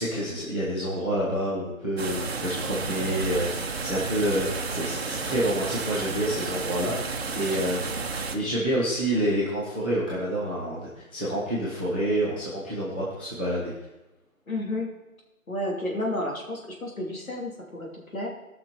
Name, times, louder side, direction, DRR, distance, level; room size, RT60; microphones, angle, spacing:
voice 1, 0.0-8.0 8.3-13.7, right 1 dB, 5° left, -9 dB, 0.8 m, -28 dB
sound 1, 2.0-8.4, right 4 dB, 45° right, 1.1 m, -32 dB
voice 2, 14.5-14.9 15.5-18.3, left 1 dB, 75° left, -1 dB, 3.1 m, -31 dB
17.5 x 5.9 x 4.3 m, 0.97 s
figure-of-eight pair, 160°, 42 cm